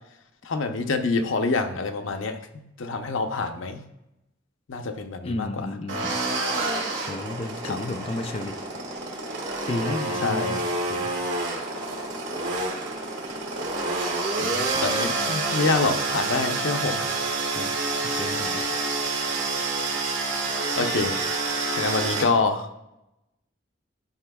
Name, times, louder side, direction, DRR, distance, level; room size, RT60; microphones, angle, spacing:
voice 1, 0.4-3.8 4.7-5.7 7.6-7.8 10.2-10.6 14.8-17.0 20.8-21.2 21.7-22.7, left 3 dB, 90° left, 6 dB, 0.7 m, -26 dB
voice 2, 5.2-6.2 7.1-8.6 9.7-10.6 10.9-11.2 14.4-14.8 17.6-17.7 18.0-18.6, left 2 dB, 30° left, 7 dB, 0.3 m, -32 dB
sound 1, 5.9-22.2, right 3 dB, 75° right, 1.7 m, -28 dB
11.5 x 4.8 x 2.3 m, 0.87 s
head